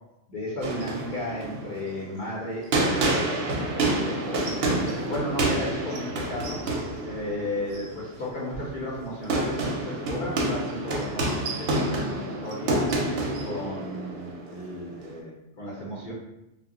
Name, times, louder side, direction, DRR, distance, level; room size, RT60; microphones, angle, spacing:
voice 1, 0.3-3.2 3.9-6.7 7.0-13.0 13.4-16.1, left 1 dB, 50° left, -6 dB, 0.7 m, -34 dB
sound 1, 0.6-15.2, right 2 dB, 65° right, 0.7 m, -29 dB
2.1 x 2.1 x 3.6 m, 0.88 s
omnidirectional pair, 1.2 m